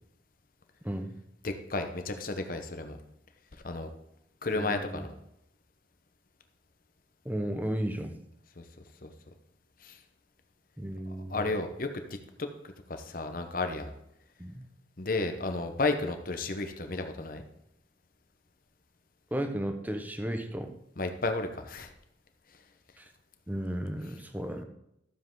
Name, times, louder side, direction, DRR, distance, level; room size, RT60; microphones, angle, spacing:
voice 1, 0.8-1.2 4.5-5.0 7.2-8.2 10.8-11.5 14.4-14.7 19.3-20.7 23.0-23.1 23.5-24.6, right 1 dB, 10° right, 6 dB, 0.9 m, -34 dB
voice 2, 1.4-3.0 3.6-3.9 4.4-5.1 8.6-8.7 9.0-9.1 9.8-10.0 11.1-11.9 12.4-13.9 15.0-17.4 21.0-21.9, left 3 dB, 50° left, 6 dB, 1.0 m, -33 dB
12.5 x 7.4 x 3.8 m, 0.80 s
head